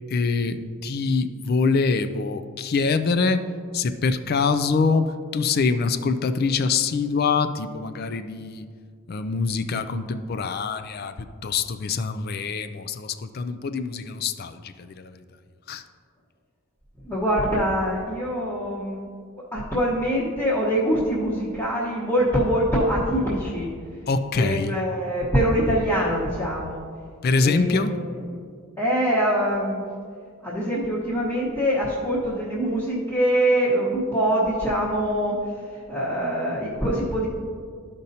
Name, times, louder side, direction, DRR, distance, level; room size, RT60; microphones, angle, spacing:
voice 1, 0.1-3.5 3.7-8.6 9.1-15.2 15.7-15.8 24.1-24.8 27.2-28.0, left 4 dB, 45° left, 11 dB, 0.4 m, -24 dB
voice 2, 17.0-19.1 19.5-23.7 24.3-26.8 27.4-28.0 28.8-29.8 30.4-37.3, equal, 10° left, -10 dB, 1.1 m, -24 dB
13.0 x 5.2 x 2.8 m, 2.1 s
head